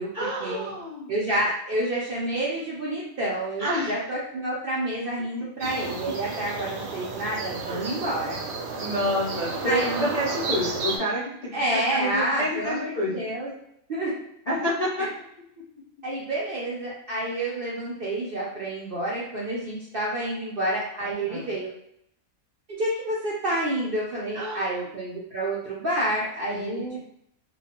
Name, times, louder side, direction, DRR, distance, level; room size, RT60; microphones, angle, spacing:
voice 1, 0.1-1.1 3.6-3.9 7.7-7.9 8.8-13.1 14.5-15.1 21.1-21.5 24.3-24.7 26.5-27.0, equal, 55° left, -8 dB, 0.4 m, -29 dB
voice 2, 1.1-8.4 9.6-10.2 11.5-13.5 13.9-14.1 15.0-15.1 16.0-21.7 22.8-27.0, right 1 dB, 65° right, -6 dB, 0.5 m, -29 dB
sound 1, 5.6-11.0, right 4 dB, 90° right, 1.1 m, -32 dB
2.3 x 2.2 x 2.8 m, 0.73 s
omnidirectional pair, 1.5 m